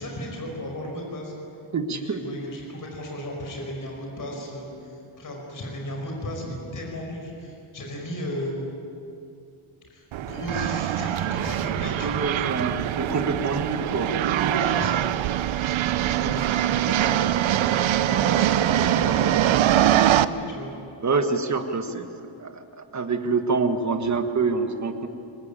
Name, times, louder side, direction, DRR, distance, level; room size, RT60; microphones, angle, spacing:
voice 1, 0.0-1.3 1.9-8.7 9.8-12.2 14.4-15.2 15.5-20.7, left 1 dB, 40° left, 0 dB, 5.3 m, -35 dB
voice 2, 1.7-2.2 12.0-14.1 21.0-22.1 22.4-25.1, right 4 dB, 35° right, 7 dB, 1.5 m, -26 dB
sound 1, 10.1-20.2, right 12 dB, 65° right, 0.8 m, -23 dB
24.0 x 20.0 x 9.0 m, 2.6 s
wide cardioid pair, 175°, 50 cm